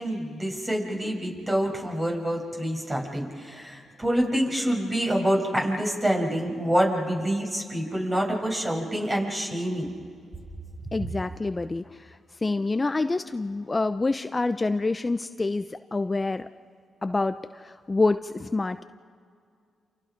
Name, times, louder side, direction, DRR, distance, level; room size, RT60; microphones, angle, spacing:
voice 1, 0.0-9.9, equal, 25° right, 0 dB, 7.2 m, -26 dB
voice 2, 10.9-12.1 12.4-16.5 17.0-18.8, left 3 dB, 30° left, 10 dB, 0.7 m, -27 dB
28.5 x 28.5 x 5.2 m, 2.2 s
supercardioid pair, 50°, 0 cm